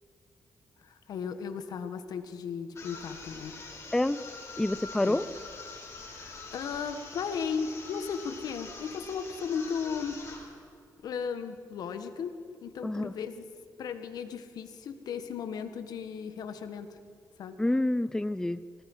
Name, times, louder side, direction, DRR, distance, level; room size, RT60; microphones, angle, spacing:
voice 1, 0.8-3.6 5.0-5.2 6.1-10.2 11.0-13.5 13.8-17.0 17.4-17.6, left 6 dB, 80° left, 9 dB, 1.7 m, -36 dB
sound 1, 2.7-10.5, left 3 dB, 45° left, 6.7 m, -45 dB
voice 2, 4.6-5.2 12.8-13.1 17.6-18.6, left 1 dB, 10° left, 15 dB, 0.6 m, -27 dB
26.5 x 19.0 x 5.7 m, 2.4 s
cardioid pair, 90°, 7 cm